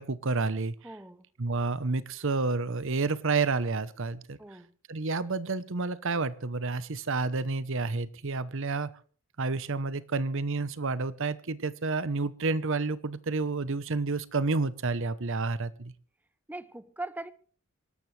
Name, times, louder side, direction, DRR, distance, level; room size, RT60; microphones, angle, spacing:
voice 1, 0.0-0.8 1.4-4.4 4.9-8.9 9.4-15.9, right 3 dB, 65° right, 16 dB, 0.9 m, -30 dB
voice 2, 0.8-1.3 4.4-4.7 16.5-17.3, right 2 dB, 10° right, 15 dB, 0.7 m, -40 dB
26.0 x 12.0 x 3.3 m, 0.41 s
head